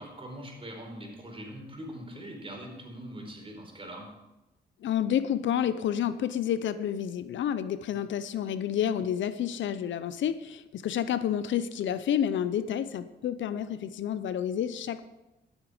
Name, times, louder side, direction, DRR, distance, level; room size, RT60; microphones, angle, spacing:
voice 1, 0.0-4.1, equal, 30° right, 1 dB, 4.4 m, -42 dB
voice 2, 4.8-15.0, left 9 dB, 80° left, 13 dB, 0.6 m, -29 dB
12.5 x 8.1 x 5.0 m, 1.0 s
cardioid pair, 55°, 19 cm